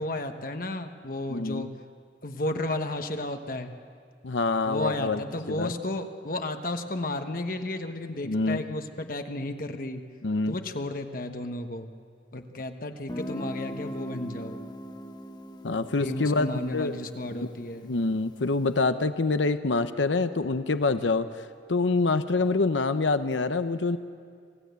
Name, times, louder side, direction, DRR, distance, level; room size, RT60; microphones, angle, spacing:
voice 1, 0.0-1.7 2.2-3.7 4.7-10.0 10.5-11.9 12.3-14.6 16.0-17.9, left 1 dB, 50° left, 6 dB, 1.2 m, -33 dB
voice 2, 1.3-1.7 4.2-5.2 5.5-5.7 8.2-8.6 10.2-10.6 15.6-17.0 17.3-17.5 17.8-21.3 21.7-24.0, left 3 dB, 85° left, 11 dB, 0.8 m, -26 dB
Guitar, 13.1-18.6, equal, 25° left, 1.0 m, -40 dB
26.5 x 17.5 x 8.2 m, 2.1 s
head